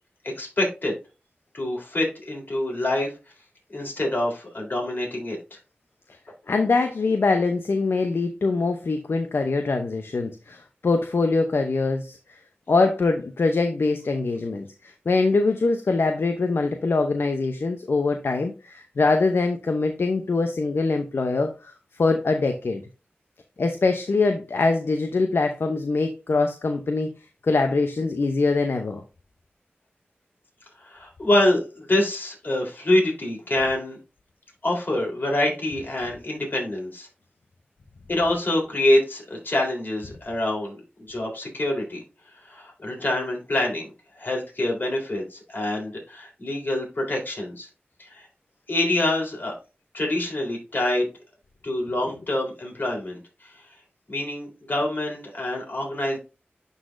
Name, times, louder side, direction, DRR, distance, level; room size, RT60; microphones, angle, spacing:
voice 1, 0.2-0.9 1.5-3.1 3.7-5.6 30.8-34.0 34.6-37.1 38.1-40.8 41.1-42.0 42.4-43.9 44.2-47.7 48.0-48.3 48.7-49.5 49.9-51.1 51.6-53.5 54.1-56.2, left 1 dB, 50° left, -1 dB, 3.5 m, -26 dB
voice 2, 6.5-12.4 12.7-21.7 22.0-22.8 23.6-27.1 27.4-29.0 52.1-52.2, left 3 dB, 70° left, 6 dB, 0.7 m, -23 dB
11.0 x 4.0 x 2.6 m, 0.31 s
wide cardioid pair, 55°, 4 cm